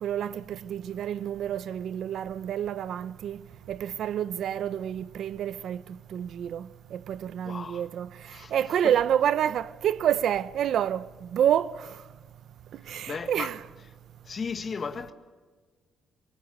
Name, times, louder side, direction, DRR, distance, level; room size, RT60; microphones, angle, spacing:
voice 1, 0.0-3.4 3.7-8.1 8.5-11.1 11.3-11.9 12.9-13.6, right 10 dB, 70° right, 0.8 m, -28 dB
voice 2, 7.4-7.9 8.2-9.0 12.8-13.5 14.2-15.1, left 5 dB, 45° left, 1.8 m, -36 dB
24.0 x 23.0 x 9.1 m
cardioid pair, 90°, 0 cm